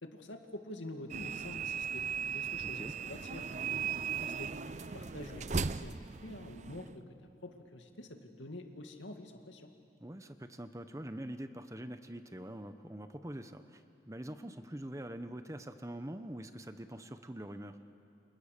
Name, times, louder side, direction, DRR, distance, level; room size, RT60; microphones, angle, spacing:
voice 1, 0.0-4.5 4.9-5.5 5.8-9.7, left 1 dB, 85° left, 4 dB, 2.3 m, -47 dB
sound 1, 1.1-7.0, right 6 dB, 40° right, 0.6 m, -37 dB
voice 2, 2.5-2.9 5.2-5.3 10.0-17.8, right 1 dB, 15° right, 9 dB, 0.9 m, -44 dB
29.0 x 28.0 x 6.8 m, 2.5 s
head